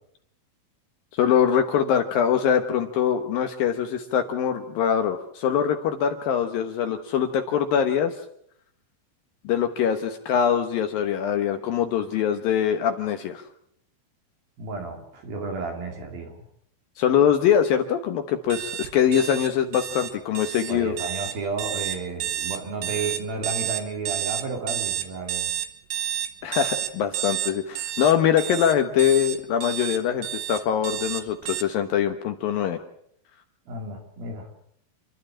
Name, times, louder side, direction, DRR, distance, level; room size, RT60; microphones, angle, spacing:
voice 1, 1.2-8.1 9.4-13.4 17.0-20.9 26.4-32.8, left 8 dB, 75° left, 6 dB, 2.2 m, -23 dB
voice 2, 14.6-16.4 20.7-25.5 33.7-34.5, right 3 dB, 55° right, 3 dB, 4.3 m, -32 dB
sound 1, 18.5-31.6, right 12 dB, 70° right, 2.1 m, -30 dB
29.0 x 11.5 x 8.6 m, 0.70 s
omnidirectional pair, 5.6 m